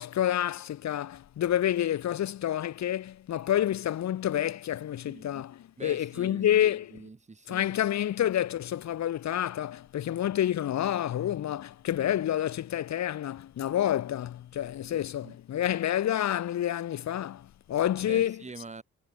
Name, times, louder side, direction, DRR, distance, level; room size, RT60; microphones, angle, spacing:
voice 1, 0.0-7.0 7.5-18.4, left 11 dB, 65° left, 1.6 m, -28 dB
voice 2, 5.1-5.4 5.8-7.7 14.9-15.4 18.1-18.8, right 3 dB, 25° right, 5.5 m, -45 dB
cardioid pair, 90°, 30 cm